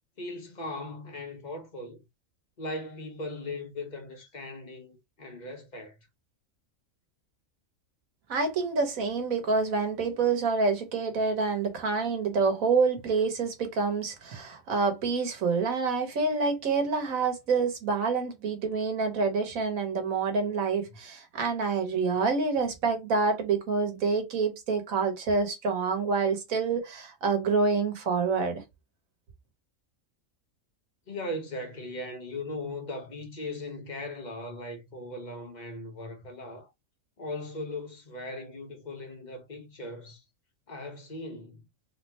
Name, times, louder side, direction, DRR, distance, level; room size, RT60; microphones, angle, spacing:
voice 1, 0.2-2.0 2.6-6.0 31.1-36.7 37.2-40.2 40.7-41.6, left 2 dB, 35° left, 1.1 m, -38 dB
voice 2, 8.3-28.6, right 4 dB, 85° right, 1.6 m, -27 dB
3.9 x 3.3 x 2.8 m
omnidirectional pair, 1.4 m